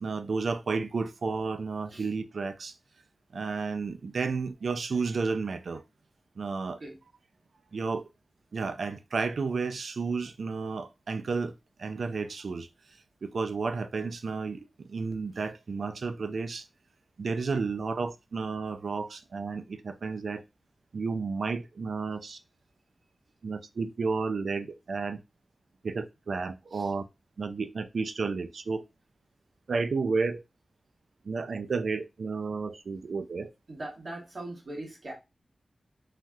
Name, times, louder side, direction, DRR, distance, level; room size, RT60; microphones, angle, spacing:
voice 1, 0.0-2.7 3.3-5.8 6.4-6.8 7.7-8.0 8.5-11.5 11.8-12.7 13.2-16.7 17.2-20.4 20.9-22.4 23.4-25.2 25.8-27.0 27.4-28.8 29.7-30.4 31.3-33.5, right 4 dB, 80° right, 0.4 m, -32 dB
voice 2, 33.7-35.1, right 1 dB, 65° right, 1.5 m, -40 dB
3.3 x 2.7 x 2.3 m
wide cardioid pair, 60°, 0 cm